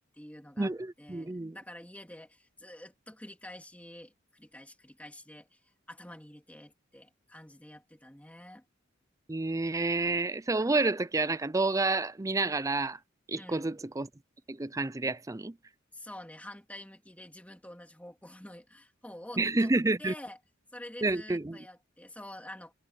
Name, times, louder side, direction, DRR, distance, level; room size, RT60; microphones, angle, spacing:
voice 1, 0.0-5.5 5.9-8.6 13.4-13.7 15.9-19.7 20.0-20.4 20.7-22.7, left 1 dB, 10° left, 3.0 m, -48 dB
voice 2, 0.6-1.6 9.3-13.0 13.3-14.1 14.5-15.5 19.4-20.1 21.0-21.7, right 2 dB, 15° right, 0.5 m, -29 dB
head